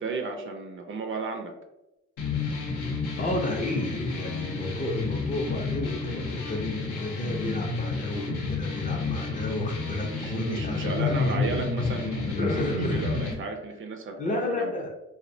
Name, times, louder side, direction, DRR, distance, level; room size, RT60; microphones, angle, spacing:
voice 1, 0.0-1.5 10.0-14.7, right 3 dB, 45° right, 4 dB, 0.4 m, -34 dB
sound 1, 2.2-13.3, left 3 dB, 90° left, 0.6 m, -30 dB
voice 2, 3.2-11.5 12.4-13.3 14.2-14.9, left 1 dB, 25° left, 1 dB, 0.4 m, -32 dB
2.5 x 2.0 x 2.6 m, 0.96 s
cardioid pair, 90°, 30 cm